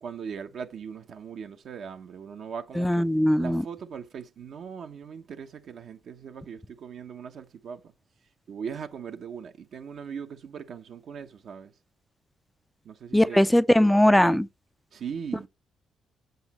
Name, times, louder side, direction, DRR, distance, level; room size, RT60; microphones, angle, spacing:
voice 1, 0.0-3.0 3.4-7.9 8.5-11.7 12.8-13.5 13.8-14.4 14.9-15.5, right 7 dB, 60° right, 0.8 m, -39 dB
voice 2, 2.8-3.6 13.1-14.5, left 1 dB, 5° left, 0.4 m, -20 dB
8.0 x 7.1 x 3.0 m
cardioid pair, 90°, 0 cm